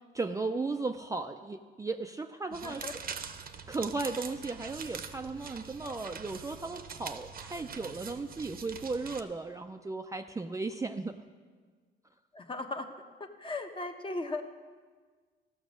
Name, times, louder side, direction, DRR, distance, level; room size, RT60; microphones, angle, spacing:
voice 1, 0.1-2.9 3.7-11.2, right 3 dB, 15° right, 6 dB, 0.4 m, -36 dB
sound 1, 2.5-9.2, right 6 dB, 50° right, 0.8 m, -44 dB
voice 2, 2.6-2.9 12.3-12.9 13.2-14.4, left 2 dB, 25° left, 6 dB, 0.9 m, -37 dB
14.0 x 6.2 x 6.2 m, 1.5 s
cardioid pair, 90°, 20 cm